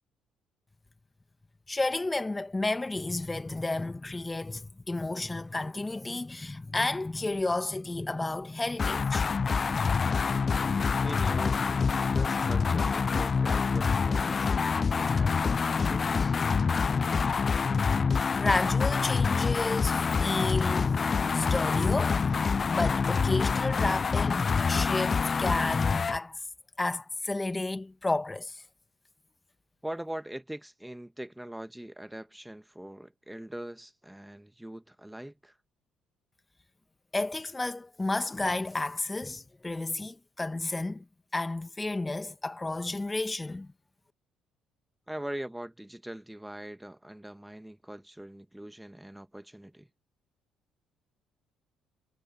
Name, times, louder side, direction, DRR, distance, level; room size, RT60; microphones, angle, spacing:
voice 1, 1.7-9.6 18.3-21.0 21.3-26.4 26.8-28.6 37.1-41.0 41.3-43.7, left 2 dB, 20° left, 1.5 m, -32 dB
sound 1, 8.8-26.2, left 5 dB, 40° left, 0.5 m, -26 dB
voice 2, 11.0-16.4 29.8-35.6 45.1-49.9, right 1 dB, 5° right, 1.4 m, -42 dB
hypercardioid pair, 55°, 0 cm